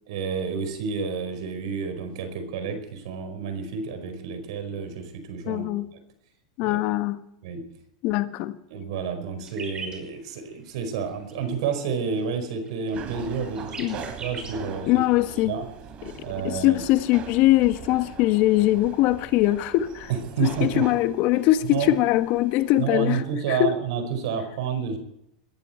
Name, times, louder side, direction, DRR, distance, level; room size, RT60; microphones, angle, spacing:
voice 1, 0.1-5.6 6.6-6.8 7.4-7.6 8.7-15.0 15.4-15.6 16.2-16.8 20.1-20.8 21.7-21.9 22.8-25.0, right 6 dB, 70° right, 4.8 m, -30 dB
voice 2, 5.5-5.9 6.6-7.2 8.0-8.6 13.8-14.0 14.9-15.5 16.0-16.2 16.4-20.1 20.4-23.2 23.5-23.7, left 15 dB, 55° left, 1.4 m, -22 dB
sound 1, 9.4-10.0 10.6-10.9 11.1-11.4 11.7-11.9 12.2-15.2, right 3 dB, 25° right, 5.9 m, -40 dB
Otis Elevator Running, 12.9-22.8, right 6 dB, 40° right, 3.5 m, -41 dB
21.0 x 15.0 x 4.5 m
hypercardioid pair, 105°, 3 cm